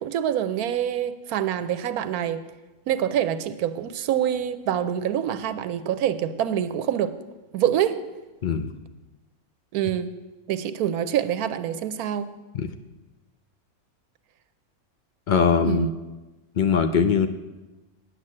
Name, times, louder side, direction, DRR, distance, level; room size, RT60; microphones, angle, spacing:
voice 1, 0.0-2.4 2.9-7.1 7.5-8.0 9.7-10.1 10.5-12.3 15.7-15.9, right 10 dB, 80° right, 12 dB, 1.1 m, -26 dB
voice 2, 8.4-8.7 12.5-12.7 15.3-15.9 16.6-17.3, left 6 dB, 80° left, 9 dB, 0.4 m, -21 dB
9.8 x 8.2 x 7.5 m, 1.1 s
omnidirectional pair, 1.6 m